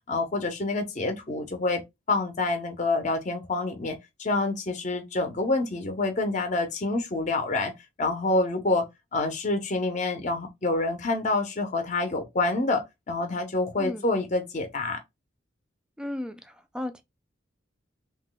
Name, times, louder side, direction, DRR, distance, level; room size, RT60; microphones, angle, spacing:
voice 1, 0.1-1.8 2.1-7.7 8.0-15.0, left 2 dB, 40° left, 0.6 m, -27 dB
voice 2, 16.0-17.0, left 1 dB, 5° right, 0.3 m, -35 dB
2.8 x 2.1 x 3.7 m
head